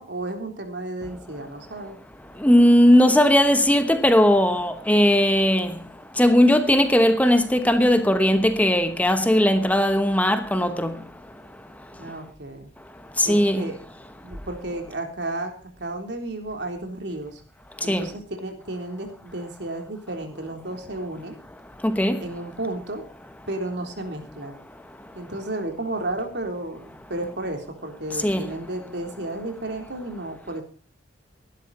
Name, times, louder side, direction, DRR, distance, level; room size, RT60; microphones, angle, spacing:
voice 1, 0.0-2.0 12.0-12.7 13.2-13.8 14.2-17.4 17.8-21.4 22.2-23.0 23.5-24.6 25.1-30.6, right 2 dB, 65° right, 3.7 m, -33 dB
voice 2, 2.4-5.7 6.2-11.0 13.2-13.7 17.9-18.1 21.8-22.2 28.2-28.5, equal, 10° left, 1.0 m, -18 dB
17.0 x 11.5 x 4.2 m
head